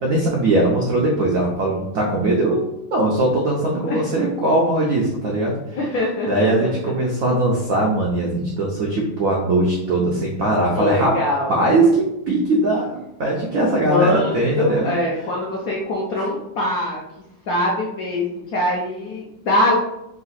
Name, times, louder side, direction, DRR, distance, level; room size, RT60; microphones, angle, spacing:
voice 1, 0.0-2.6 2.9-5.8 6.3-11.2 11.5-14.9 16.2-16.3, right 2 dB, 75° right, -2 dB, 0.7 m, -20 dB
voice 2, 5.8-6.7 10.7-11.5 13.8-17.0 17.5-19.7, left 1 dB, 70° left, -3 dB, 0.8 m, -23 dB
3.9 x 2.4 x 4.0 m, 0.87 s
omnidirectional pair, 2.3 m